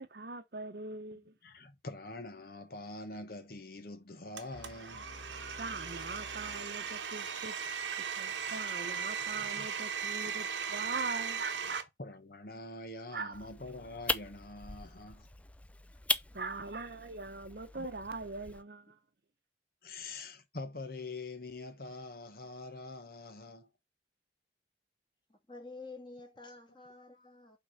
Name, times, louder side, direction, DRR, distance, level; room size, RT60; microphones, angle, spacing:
voice 1, 0.0-1.3 5.6-7.5 8.2-11.8 13.1-13.4 16.3-19.0, right 3 dB, 55° right, 0.9 m, -41 dB
voice 2, 1.4-5.1 8.4-8.5 9.3-9.7 11.6-15.3 17.7-18.0 19.8-23.7, left 2 dB, 55° left, 1.0 m, -45 dB
Domestic sounds home sounds, 4.4-11.8, right 7 dB, 90° right, 1.2 m, -38 dB
sound 1, 4.5-7.5, left 1 dB, 80° left, 1.1 m, -52 dB
sound 2, 13.3-18.6, left 2 dB, 5° left, 0.3 m, -39 dB
voice 3, 25.3-27.6, left 3 dB, 25° left, 2.0 m, -49 dB
5.6 x 3.9 x 5.5 m
head